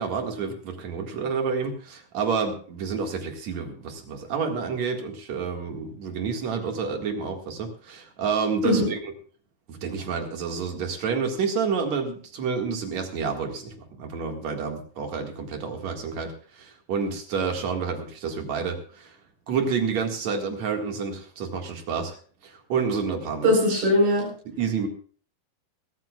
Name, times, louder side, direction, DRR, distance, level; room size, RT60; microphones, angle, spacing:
voice 1, 0.0-9.0 9.7-19.2 19.5-22.2 22.4-23.6 24.5-24.9, right 5 dB, 55° right, 4 dB, 2.8 m, -29 dB
voice 2, 23.4-24.3, left 1 dB, 80° right, -1 dB, 6.2 m, -20 dB
23.5 x 13.5 x 2.4 m, 0.43 s
omnidirectional pair, 4.3 m